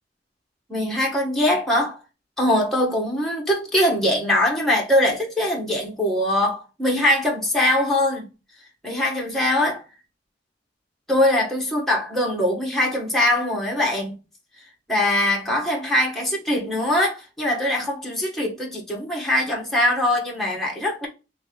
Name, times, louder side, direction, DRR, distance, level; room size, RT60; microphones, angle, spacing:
voice 1, 0.7-2.0 2.4-8.3 8.8-9.8 11.1-14.2 14.9-21.1, left 1 dB, ahead, 1.2 m, -22 dB
3.5 x 3.3 x 3.7 m
head